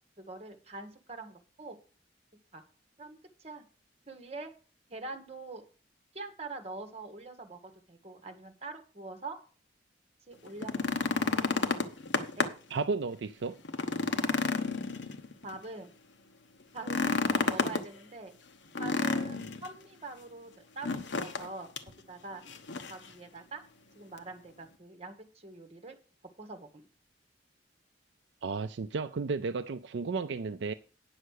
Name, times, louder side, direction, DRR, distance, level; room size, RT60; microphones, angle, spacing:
voice 1, 0.2-1.8 2.5-2.6 3.0-3.6 4.1-4.5 4.9-5.6 6.1-9.4 10.3-11.1 12.4-12.5 15.4-15.9 16.7-17.2 17.5-18.3 18.8-21.7 22.1-22.4 22.9-23.6 23.9-26.0 26.4-26.8, right 3 dB, 35° right, 1.5 m, -44 dB
sound 1, 10.5-12.7 13.1-13.2 13.6-15.5 16.8-17.9 18.8-19.7 20.8-21.5 21.8-21.9 22.5-23.1 24.2-24.3, left 3 dB, 75° left, 1.0 m, -30 dB
voice 2, 12.7-13.6 28.4-30.7, right 4 dB, 70° right, 0.4 m, -33 dB
9.4 x 6.5 x 6.4 m
head